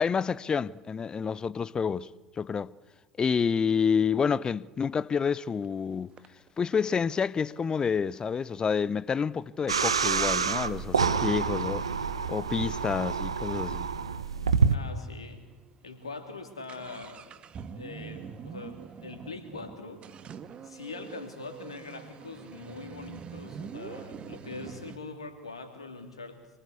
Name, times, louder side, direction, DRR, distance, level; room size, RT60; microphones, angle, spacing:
voice 1, 0.0-2.1 2.4-2.7 3.2-6.1 6.6-11.8 12.3-13.9, left 6 dB, 30° left, 0.8 m, -28 dB
sound 1, 5.6-5.7 6.2-8.8 9.4-9.5 9.9-10.0 10.4-14.1 14.4-14.5 14.7-14.8 15.4-15.5 15.8-25.0, right 7 dB, 40° right, 1.7 m, -46 dB
sound 2, 9.7-14.8, right 5 dB, 85° right, 1.0 m, -27 dB
voice 2, 14.7-15.5 15.8-17.4 17.7-20.0 20.6-26.4, left 3 dB, 85° left, 3.2 m, -42 dB
26.5 x 23.5 x 8.3 m
figure-of-eight pair, 65°, 3 cm